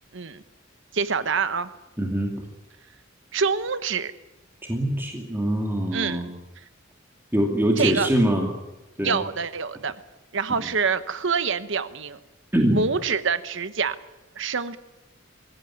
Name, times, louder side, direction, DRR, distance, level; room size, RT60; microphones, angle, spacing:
voice 1, 0.9-1.7 3.3-4.1 5.9-6.2 7.8-8.1 9.0-10.0 10.3-12.2 12.7-14.0 14.4-14.8, right 5 dB, 65° right, 12 dB, 1.1 m, -26 dB
voice 2, 2.0-2.3 4.6-6.3 7.3-8.5 9.0-9.2 10.6-10.7 12.5-12.8, equal, 10° right, 0 dB, 2.7 m, -23 dB
23.5 x 16.0 x 9.5 m, 1.0 s
head